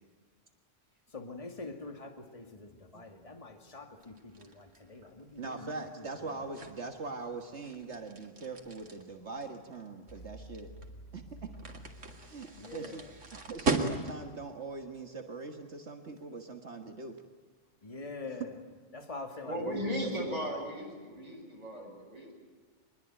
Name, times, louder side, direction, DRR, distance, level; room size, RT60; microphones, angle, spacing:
voice 1, 1.1-6.7 12.5-13.1 17.8-18.6 18.9-20.6, left 3 dB, 30° left, 5 dB, 2.3 m, -45 dB
sound 1, 4.0-14.4, right 3 dB, 85° right, 2.7 m, -39 dB
voice 2, 5.4-10.7 11.1-11.5 12.3-13.0 13.3-17.2, right 3 dB, 65° right, 5 dB, 1.9 m, -42 dB
sound 2, 10.1-14.9, equal, 65° left, 5.5 m, -52 dB
voice 3, 19.4-22.3, equal, 30° right, -2 dB, 7.7 m, -36 dB
25.0 x 21.5 x 9.1 m, 1.4 s
omnidirectional pair, 1.2 m